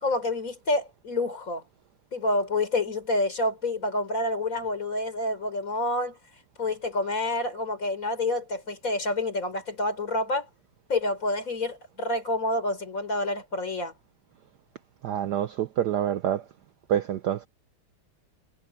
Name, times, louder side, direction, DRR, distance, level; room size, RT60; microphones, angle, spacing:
voice 1, 0.0-1.6 2.1-6.2 6.6-10.5 10.9-13.9, left 2 dB, 40° left, 4.4 m, -28 dB
voice 2, 15.0-16.4 16.9-17.5, right 10 dB, 65° right, 1.2 m, -27 dB
omnidirectional pair, 2.3 m